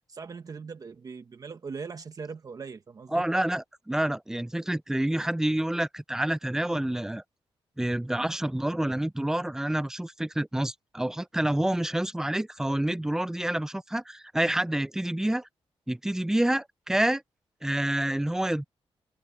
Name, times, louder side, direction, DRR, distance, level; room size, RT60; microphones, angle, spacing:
voice 1, 0.1-3.2, right 5 dB, 40° right, 1.1 m, -40 dB
voice 2, 3.1-7.2 7.8-15.5 15.9-17.2 17.6-18.6, right 1 dB, 5° right, 0.3 m, -28 dB
wide cardioid pair, 135°, 10 cm